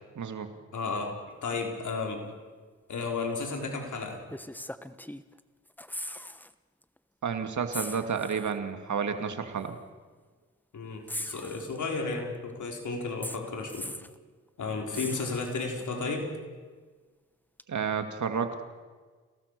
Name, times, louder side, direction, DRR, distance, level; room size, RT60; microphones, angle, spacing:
voice 1, 0.2-0.5 7.2-9.8 17.7-18.6, right 6 dB, 65° right, 7 dB, 2.4 m, -31 dB
voice 2, 0.7-2.3 2.9-4.2 10.7-13.9 14.6-16.3, left 3 dB, 70° left, 2 dB, 5.0 m, -33 dB
sound 1, 3.4-3.6 4.3-5.4 5.7-6.5 6.8-7.0 7.7-8.6 9.6-9.7 11.1-12.1 13.2-14.2 14.9-15.8 17.6-17.7, left 1 dB, 5° left, 1.1 m, -40 dB
29.0 x 18.5 x 6.9 m, 1.4 s
cardioid pair, 55°, 31 cm